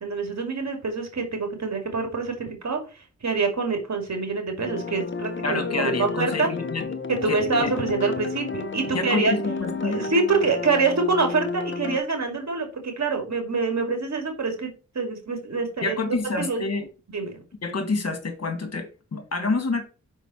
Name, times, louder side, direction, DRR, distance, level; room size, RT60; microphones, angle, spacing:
voice 1, 0.0-6.5 7.1-9.3 9.8-16.6 17.1-17.4, right 4 dB, 65° right, 2.5 m, -26 dB
sound 1, 4.6-12.0, left 4 dB, 40° left, 0.8 m, -32 dB
voice 2, 5.4-6.8 7.3-7.7 8.9-10.0 15.8-16.9 17.6-19.8, left 3 dB, 55° left, 1.8 m, -28 dB
5.8 x 5.4 x 4.3 m
cardioid pair, 65°, 30 cm